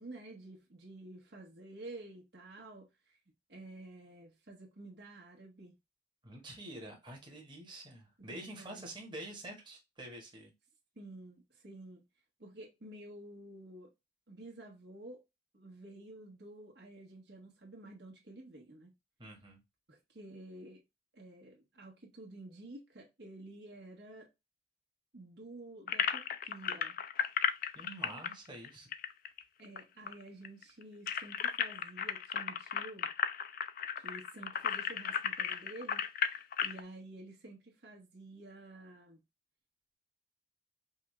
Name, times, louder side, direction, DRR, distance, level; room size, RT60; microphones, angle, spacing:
voice 1, 0.0-3.2 3.5-5.7 8.2-8.9 10.9-12.0 12.4-13.9 14.3-15.2 15.5-18.9 19.9-20.8 21.1-24.3 25.1-27.0 29.6-33.1 34.0-39.2, right 2 dB, 70° right, 1.5 m, -51 dB
voice 2, 6.2-10.5 19.2-19.6 27.7-28.9, right 1 dB, 25° right, 1.3 m, -47 dB
sound 1, 25.9-29.8 30.1-30.2 30.4-36.8, left 8 dB, 55° left, 0.4 m, -35 dB
5.4 x 2.4 x 3.1 m
head